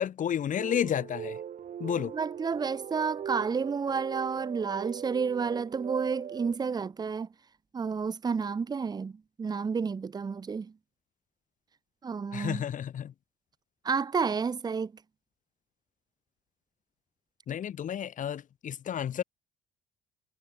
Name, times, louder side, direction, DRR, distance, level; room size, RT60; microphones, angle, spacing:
voice 1, 0.0-1.4 1.8-2.1 12.3-13.1 17.5-19.2, left 9 dB, 50° left, 2.5 m, -31 dB
sound 1, 0.6-6.6, right 9 dB, 50° right, 4.7 m, -40 dB
voice 2, 2.0-7.3 7.7-10.7 12.0-12.6 13.8-14.9, right 5 dB, 25° right, 0.8 m, -31 dB
cardioid pair, 110°, 17 cm